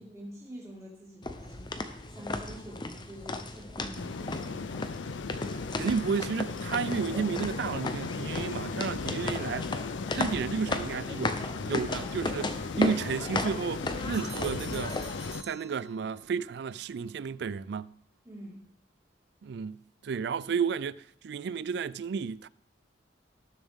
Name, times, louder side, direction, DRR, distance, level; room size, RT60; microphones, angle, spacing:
voice 1, 0.0-1.7 2.1-4.7 18.2-18.7, equal, 15° right, 4.2 m, -46 dB
sound 1, 1.2-15.3, left 2 dB, 25° left, 0.8 m, -36 dB
sound 2, 3.9-15.4, left 4 dB, 85° left, 0.5 m, -37 dB
voice 2, 5.7-9.7 10.1-11.4 11.6-14.9 15.4-17.9 19.4-22.5, right 5 dB, 60° right, 0.3 m, -32 dB
Bell, 14.1-16.4, right 5 dB, 40° right, 3.6 m, -48 dB
18.5 x 7.2 x 3.6 m
head